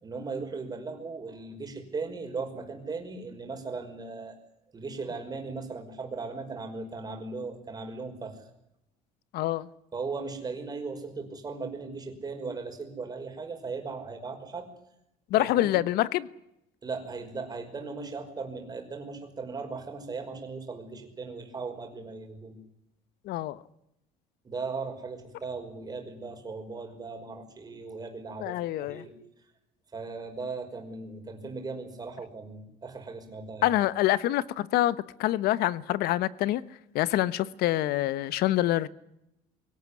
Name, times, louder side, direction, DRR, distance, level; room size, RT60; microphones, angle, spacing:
voice 1, 0.0-4.4 4.7-8.4 9.9-14.7 15.3-15.7 16.8-22.6 24.4-29.1 29.9-33.7, right 4 dB, 25° right, 5.7 m, -38 dB
voice 2, 9.3-9.7 15.3-16.3 23.3-23.6 28.4-29.0 33.6-36.6 36.9-38.9, left 15 dB, 75° left, 1.2 m, -26 dB
24.0 x 18.0 x 9.9 m
cardioid pair, 135°, 16 cm